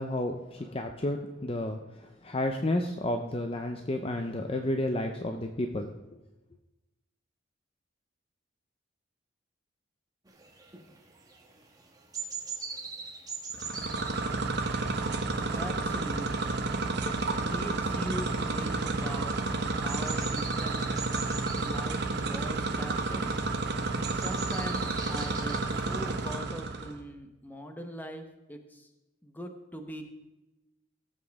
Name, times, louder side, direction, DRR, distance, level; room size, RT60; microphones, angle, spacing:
voice 1, 0.0-5.9, left 1 dB, 30° left, 5 dB, 0.6 m, -31 dB
sound 1, 10.3-26.3, right 4 dB, 20° right, 1.3 m, -44 dB
sound 2, 13.5-26.9, right 3 dB, 55° right, 1.0 m, -31 dB
voice 2, 15.5-16.6 17.0-19.4 19.8-20.8 21.6-23.3 24.1-28.9 29.2-30.0, equal, 10° left, 5 dB, 0.9 m, -41 dB
17.5 x 7.5 x 3.5 m, 1.0 s
head